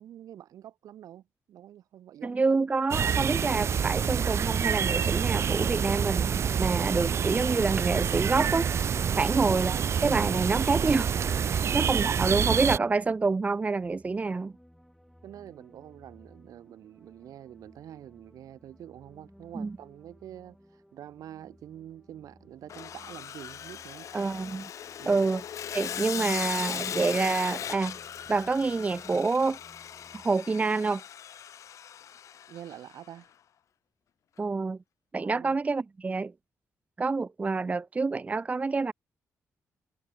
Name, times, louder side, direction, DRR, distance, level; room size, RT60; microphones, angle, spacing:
voice 1, 0.0-2.4 15.2-24.1 25.0-25.2 32.5-33.3 35.2-35.6, right 11 dB, 85° right, 3.9 m, -47 dB
voice 2, 2.2-8.7 9.2-11.1 11.5-14.5 19.5-19.7 24.1-24.7 25.1-25.4 25.7-28.0 28.3-29.6 30.2-31.0 34.4-34.8 35.1-36.3 37.0-38.9, right 4 dB, 25° right, 1.0 m, -27 dB
sound 1, 2.9-12.8, right 7 dB, 50° right, 1.2 m, -27 dB
sound 2, 12.0-30.3, equal, ahead, 7.2 m, -59 dB
Sawing, 22.7-32.9, left 9 dB, 65° left, 0.7 m, -38 dB
cardioid pair, 120°, 6 cm